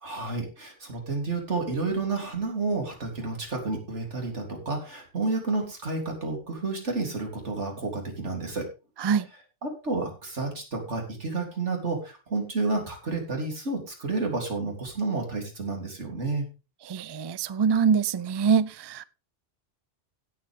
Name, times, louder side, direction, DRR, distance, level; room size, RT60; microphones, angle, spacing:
voice 1, 0.0-8.7 9.6-16.5, right 3 dB, 75° right, 3.6 m, -30 dB
voice 2, 16.9-19.0, right 6 dB, 45° right, 0.3 m, -24 dB
16.0 x 7.6 x 3.6 m
omnidirectional pair, 1.2 m